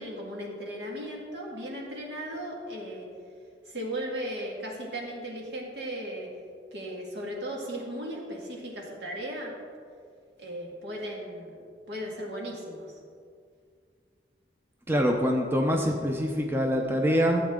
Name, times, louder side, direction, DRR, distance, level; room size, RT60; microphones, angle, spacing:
voice 1, 0.0-3.1 3.7-6.3 6.7-9.5 10.4-11.6 11.9-13.0, equal, 70° right, -1 dB, 2.1 m, -36 dB
voice 2, 14.9-17.4, equal, 15° right, 1 dB, 0.7 m, -25 dB
14.0 x 8.0 x 3.8 m, 2.2 s
head